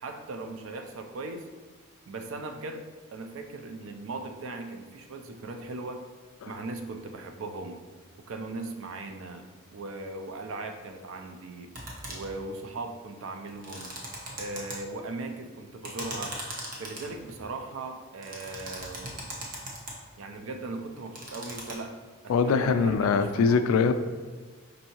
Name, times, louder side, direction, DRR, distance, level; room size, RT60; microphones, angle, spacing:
voice 1, 0.0-1.5 2.1-2.9 3.1-6.1 6.5-7.8 8.3-9.5 9.7-11.7 12.1-13.9 14.4-16.4 16.8-19.3 20.2-22.0 22.2-23.7, right 2 dB, 75° right, 6 dB, 0.4 m, -38 dB
sound 1, 11.7-12.4 13.4-14.7 15.8-17.4 18.2-19.9 21.0-21.7, right 1 dB, 40° right, 0.8 m, -38 dB
voice 2, 22.3-23.9, left 5 dB, 85° left, 12 dB, 0.3 m, -23 dB
5.3 x 2.6 x 2.9 m, 1.4 s
head